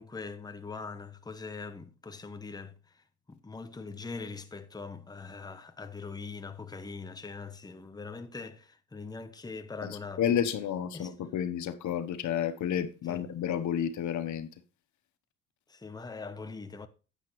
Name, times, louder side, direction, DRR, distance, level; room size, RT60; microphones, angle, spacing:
voice 1, 0.0-10.3 10.9-11.1 13.1-13.3 15.7-16.9, left 4 dB, 15° left, 0.8 m, -42 dB
voice 2, 9.8-14.5, left 9 dB, 75° left, 1.0 m, -31 dB
9.3 x 8.2 x 3.1 m
cardioid pair, 90°, 30 cm